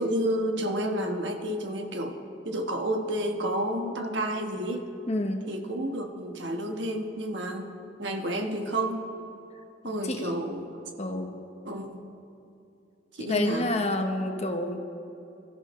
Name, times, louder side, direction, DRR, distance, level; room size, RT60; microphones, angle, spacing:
voice 1, 0.0-2.2 2.4-4.8 5.5-9.1 9.8-10.7 11.6-12.0 13.2-13.7, right 1 dB, 70° right, 4 dB, 1.3 m, -30 dB
voice 2, 5.1-5.4 10.0-10.3 11.0-11.4 13.2-14.8, left 1 dB, 35° left, 5 dB, 1.0 m, -28 dB
24.0 x 13.5 x 3.2 m, 2.7 s
head